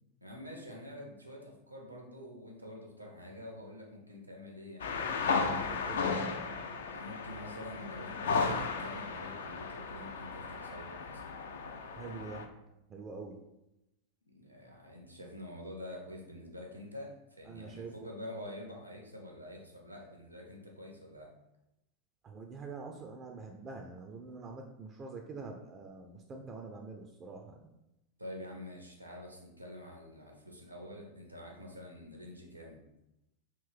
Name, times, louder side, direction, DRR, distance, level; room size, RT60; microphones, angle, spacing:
voice 1, 0.2-4.9 6.8-11.4 14.3-21.3 28.2-32.8, left 1 dB, 90° right, 0 dB, 0.7 m, -47 dB
sound 1, 4.8-12.4, left 4 dB, 60° left, 0.3 m, -35 dB
voice 2, 5.7-6.1 11.9-12.5 12.9-13.4 17.5-18.1 22.2-27.7, right 4 dB, 25° right, 2 dB, 0.3 m, -45 dB
3.6 x 2.6 x 3.4 m, 0.89 s
figure-of-eight pair, 90°, 0 cm